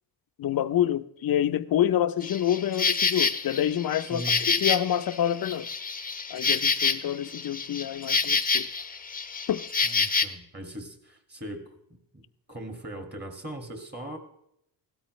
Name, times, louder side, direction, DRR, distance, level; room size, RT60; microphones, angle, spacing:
voice 1, 0.4-5.7 6.3-8.7 9.5-9.7, left 11 dB, 55° left, 0.7 m, -27 dB
Insect, 2.2-10.2, left 5 dB, 20° left, 0.8 m, -27 dB
voice 2, 4.0-4.4 9.8-11.8 12.1-14.2, right 1 dB, 25° right, 2.1 m, -39 dB
16.5 x 13.0 x 3.2 m
cardioid pair, 115°, 43 cm